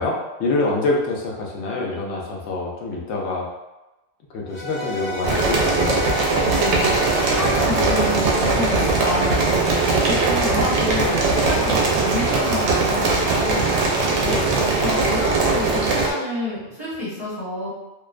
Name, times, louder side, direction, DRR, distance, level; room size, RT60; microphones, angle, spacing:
voice 1, 0.0-3.5 4.3-6.0 14.2-14.5, left 3 dB, 80° left, -2 dB, 0.9 m, -25 dB
sound 1, 4.5-9.7, equal, 15° left, 0.8 m, -32 dB
sound 2, 5.2-16.1, right 3 dB, 85° right, 0.9 m, -20 dB
voice 2, 6.4-6.9 7.2-14.1 14.4-17.7, left 1 dB, 35° left, -11 dB, 1.3 m, -29 dB
2.5 x 2.1 x 2.4 m, 1.0 s
omnidirectional pair, 1.1 m